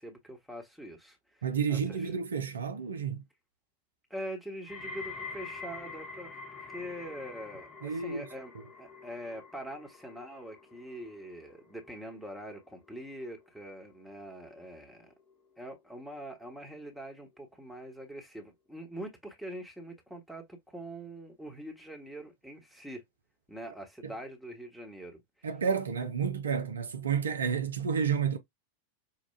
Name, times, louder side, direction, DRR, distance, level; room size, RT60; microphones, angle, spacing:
voice 1, 0.0-2.1 4.1-15.1 15.6-23.0 23.5-25.5, right 1 dB, ahead, 1.2 m, -44 dB
voice 2, 1.4-3.2 7.8-8.3 24.0-24.1 25.4-28.4, right 6 dB, 70° right, 0.6 m, -30 dB
sound 1, 4.7-15.8 16.1-16.6 17.3-17.4, left 4 dB, 25° left, 0.9 m, -47 dB
5.6 x 2.3 x 2.3 m
figure-of-eight pair, 90°, 0 cm